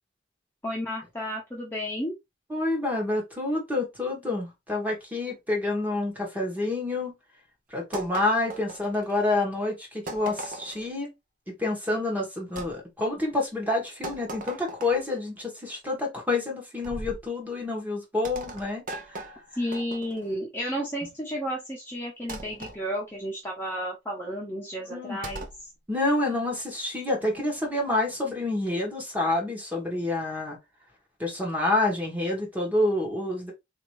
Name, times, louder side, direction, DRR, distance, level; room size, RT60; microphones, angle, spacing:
voice 1, 0.6-2.1 19.6-25.5, equal, 10° left, 0.8 m, -32 dB
voice 2, 2.5-7.1 7.7-11.1 11.5-19.2 24.9-25.2 25.9-30.6 31.2-33.5, left 2 dB, 10° right, 1.2 m, -28 dB
sound 1, 7.9-9.4 10.1-10.9 12.6-12.7 14.0-15.2 16.8-17.3 18.2-20.4 22.3-22.8 25.2-25.6, right 2 dB, 45° right, 0.7 m, -39 dB
3.6 x 2.9 x 3.0 m
head